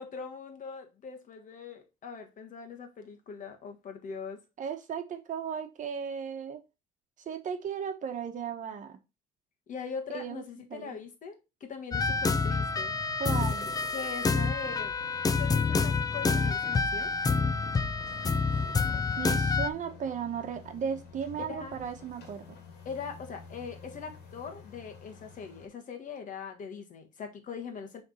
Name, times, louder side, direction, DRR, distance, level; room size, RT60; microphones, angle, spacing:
voice 1, 0.0-4.4 9.7-12.9 13.9-14.9 15.3-17.1 21.5-21.8 22.8-28.0, left 6 dB, 50° left, 1.5 m, -41 dB
voice 2, 4.6-6.6 7.3-9.0 10.1-10.4 10.7-11.0 13.2-13.7 18.2-18.4 18.9-22.6, right 7 dB, 50° right, 1.1 m, -36 dB
sound 1, 11.9-19.7, left 4 dB, 20° left, 0.4 m, -28 dB
sound 2, 12.4-25.7, left 5 dB, 75° left, 1.8 m, -50 dB
6.6 x 3.5 x 4.2 m
cardioid pair, 110°, 17 cm